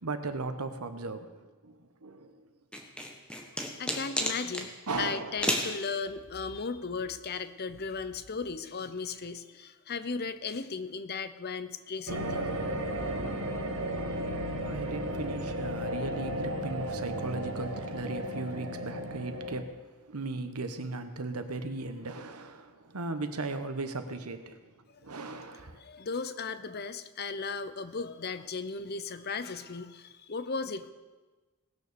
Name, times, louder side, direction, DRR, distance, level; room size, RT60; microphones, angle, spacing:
voice 1, 0.0-1.3 1.6-2.4 4.9-5.4 14.6-19.8 20.1-24.6 25.0-25.8, right 3 dB, 85° right, 9 dB, 1.2 m, -37 dB
sound 1, 2.7-4.7 5.4-5.7, left 1 dB, 5° left, 1.4 m, -31 dB
voice 2, 3.5-12.5 24.9-25.3 25.7-30.9, left 4 dB, 45° left, 12 dB, 0.7 m, -36 dB
sound 2, 12.1-19.6, right 1 dB, 65° right, 1.5 m, -34 dB
19.0 x 6.8 x 6.9 m, 1.3 s
head